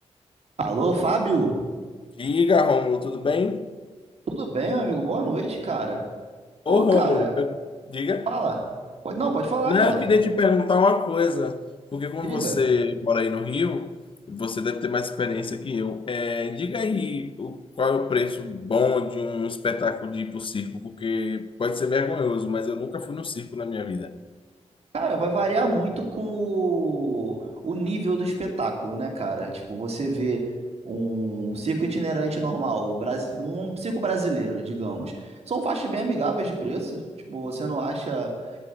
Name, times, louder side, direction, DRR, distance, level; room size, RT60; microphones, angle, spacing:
voice 1, 0.6-1.7 4.3-6.1 6.7-7.3 8.3-8.8 9.0-10.1 12.2-12.7 24.9-30.5 30.8-38.4, right 3 dB, 60° right, 2.5 m, -27 dB
voice 2, 2.2-3.7 6.7-7.5 7.9-8.3 9.7-11.6 11.9-13.9 14.3-24.1, left 4 dB, 45° left, 0.7 m, -24 dB
10.5 x 8.1 x 9.2 m
wide cardioid pair, 90°, 12 cm